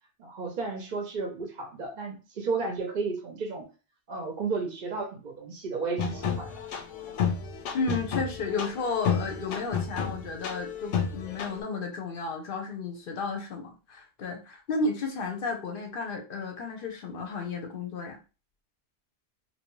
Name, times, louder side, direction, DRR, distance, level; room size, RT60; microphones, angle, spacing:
voice 1, 0.2-3.7 4.1-6.5, right 4 dB, 55° right, 2 dB, 0.6 m, -33 dB
sound 1, 6.0-11.6, left 7 dB, 85° left, 0.9 m, -31 dB
voice 2, 7.7-18.2, left 3 dB, 60° left, 3 dB, 0.7 m, -33 dB
2.6 x 2.1 x 3.0 m, 0.32 s
omnidirectional pair, 1.2 m